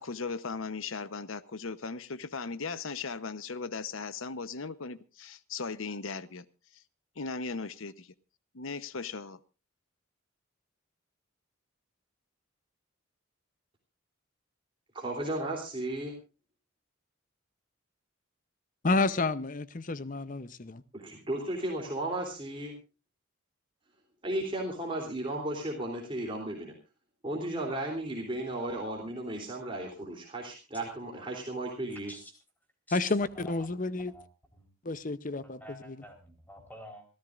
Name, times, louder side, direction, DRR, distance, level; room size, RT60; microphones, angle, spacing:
voice 1, 0.0-6.4 6.7-6.8 7.2-8.1 8.5-9.4, left 4 dB, 75° left, 0.9 m, -37 dB
voice 2, 14.9-16.1 20.9-22.7 24.2-26.7 27.2-32.1, right 1 dB, 25° right, 3.3 m, -34 dB
voice 3, 18.8-20.8 32.9-34.1 34.8-36.0, left 3 dB, 40° left, 0.8 m, -30 dB
voice 4, 32.9-33.6 34.1-34.3 34.5-34.7 35.4-37.1, equal, 10° left, 4.1 m, -49 dB
26.5 x 14.0 x 2.5 m
head